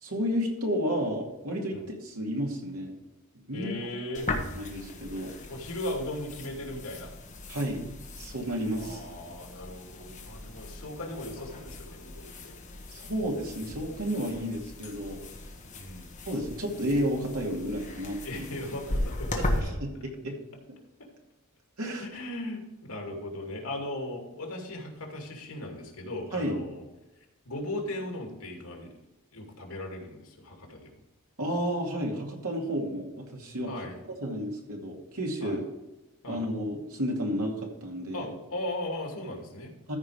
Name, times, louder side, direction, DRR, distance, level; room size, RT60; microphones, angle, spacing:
voice 1, 0.0-2.9 3.5-3.7 4.5-5.3 7.5-7.8 8.2-9.0 12.9-15.2 16.3-18.5 19.4-20.4 21.8-22.1 26.3-26.6 31.4-33.7 34.2-35.6 36.3-38.3 39.9-40.0, equal, 85° right, 0 dB, 2.5 m, -32 dB
voice 2, 3.5-4.3 5.5-7.1 8.8-12.5 15.7-16.1 18.2-19.7 22.0-26.8 27.4-28.9 29.3-30.9 33.7-34.0 35.4-35.6 36.2-36.4 38.1-40.0, left 1 dB, 85° left, 1 dB, 2.5 m, -38 dB
sound 1, 4.1-19.6, left 1 dB, 35° left, 1.5 m, -38 dB
14.0 x 5.1 x 5.0 m, 1.0 s
head